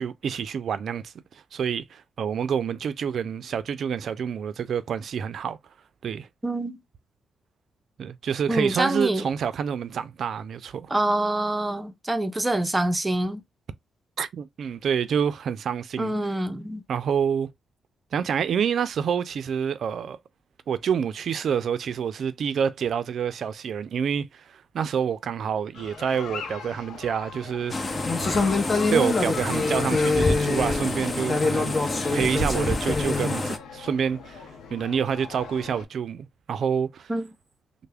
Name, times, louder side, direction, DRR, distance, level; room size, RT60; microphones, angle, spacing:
voice 1, 0.0-5.6 6.0-6.3 8.0-10.9 14.2-16.1 16.9-17.5 18.1-20.2 20.7-27.9 28.2-28.6 28.9-37.1, right 7 dB, 70° right, 0.4 m, -28 dB
voice 2, 6.4-6.8 8.5-9.2 10.9-13.4 16.0-16.8 37.1-37.3, right 1 dB, 15° right, 0.6 m, -25 dB
sound 1, 25.7-35.9, left 5 dB, 80° left, 0.7 m, -41 dB
sound 2, 27.7-33.6, left 3 dB, 30° left, 0.7 m, -24 dB
3.3 x 2.1 x 3.3 m
cardioid pair, 80°, 0 cm